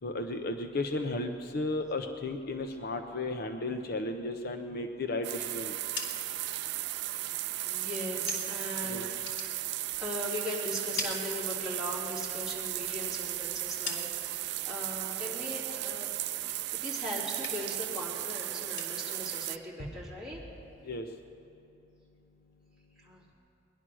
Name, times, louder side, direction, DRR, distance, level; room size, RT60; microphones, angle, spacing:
voice 1, 0.0-5.9 8.9-9.0 20.8-21.1, left 2 dB, 55° left, 6 dB, 0.7 m, -34 dB
sound 1, 5.2-19.6, right 15 dB, 60° right, 0.4 m, -36 dB
sound 2, 5.8-8.7 9.1-10.4 10.7-12.0 12.3-14.5 14.9-15.3 15.7-17.0 17.2-17.9 18.1-21.0, left 3 dB, 70° left, 2.9 m, -44 dB
voice 2, 7.6-9.2 10.0-16.4 16.7-20.4 23.0-23.2, left 1 dB, 5° right, -7 dB, 3.3 m, -39 dB
20.5 x 11.0 x 6.2 m, 2.7 s
head